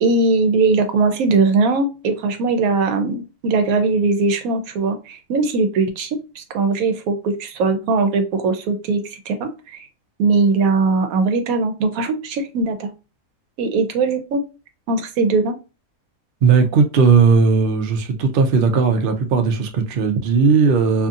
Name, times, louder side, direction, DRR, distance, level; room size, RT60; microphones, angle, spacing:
voice 1, 0.0-9.9 10.2-12.9 13.6-14.4 14.9-15.6, right 3 dB, 80° right, 1.0 m, -20 dB
voice 2, 16.4-21.1, right 5 dB, 65° right, 0.5 m, -16 dB
2.6 x 2.6 x 2.4 m
omnidirectional pair, 1.5 m